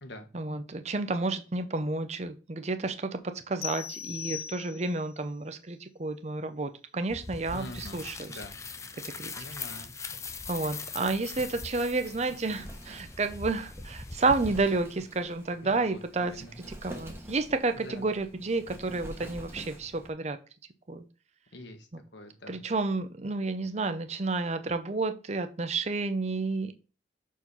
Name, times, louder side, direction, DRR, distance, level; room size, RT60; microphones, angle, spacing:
voice 1, 0.3-8.4 9.2-9.3 10.5-20.4 20.9-21.0 22.5-26.7, right 3 dB, 35° right, 9 dB, 0.6 m, -31 dB
sound 1, 3.6-5.1, left 9 dB, 55° left, 0.8 m, -39 dB
sound 2, 7.1-14.5, left 4 dB, 15° left, 0.4 m, -41 dB
voice 2, 7.5-8.0 8.3-8.6 9.4-9.9 15.6-16.6 17.7-18.0 21.5-21.9 22.1-22.6, left 1 dB, 75° left, 5 dB, 1.5 m, -45 dB
Wind, 11.4-20.1, equal, 15° right, 1.2 m, -47 dB
6.4 x 4.6 x 5.6 m, 0.34 s
head